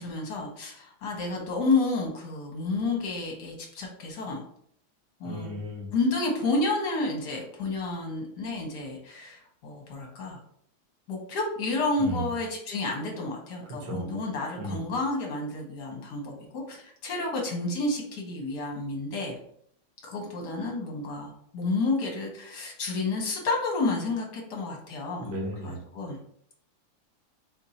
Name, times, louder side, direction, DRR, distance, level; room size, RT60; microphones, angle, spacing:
voice 1, 0.0-4.4 5.2-5.5 5.9-10.4 11.1-19.4 20.0-25.3 25.6-26.2, left 3 dB, 60° left, 0 dB, 1.4 m, -30 dB
voice 2, 5.2-5.9 12.0-12.3 13.8-14.1 14.6-14.8 25.2-25.9, right 1 dB, 50° right, -3 dB, 1.4 m, -35 dB
4.4 x 2.6 x 4.0 m, 0.67 s
omnidirectional pair, 2.1 m